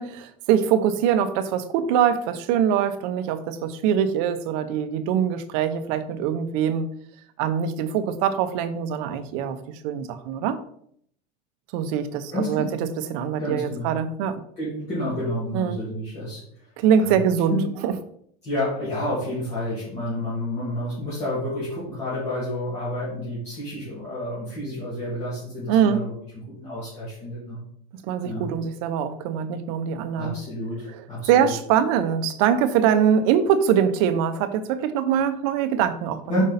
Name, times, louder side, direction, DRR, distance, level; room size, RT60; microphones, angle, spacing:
voice 1, 0.0-6.9 7.4-9.6 9.8-10.6 11.7-14.4 15.5-15.8 16.8-17.6 17.8-17.9 25.7-26.0 28.1-30.4 30.9-31.0 31.3-36.4, right 8 dB, 60° right, 10 dB, 0.8 m, -23 dB
voice 2, 12.3-12.7 13.4-13.9 14.6-16.4 17.0-17.2 17.5-17.6 18.4-26.1 26.5-27.6 28.2-28.5 30.1-31.5 36.3-36.4, left 1 dB, 30° left, -9 dB, 2.6 m, -29 dB
5.4 x 5.3 x 4.1 m, 0.67 s
supercardioid pair, 160°, 21 cm